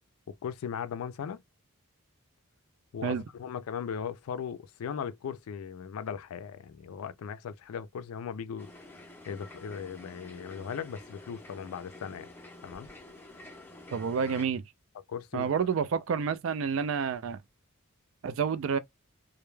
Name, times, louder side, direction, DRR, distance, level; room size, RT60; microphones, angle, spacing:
voice 1, 0.3-1.4 2.9-8.7 9.3-12.3 12.6-12.9 15.1-15.5, left 7 dB, 80° left, 0.3 m, -38 dB
sound 1, 8.6-14.5, left 1 dB, 10° left, 0.5 m, -49 dB
voice 2, 13.9-14.6 15.3-17.4 18.2-18.8, right 6 dB, 65° right, 0.4 m, -29 dB
2.2 x 2.0 x 3.0 m
head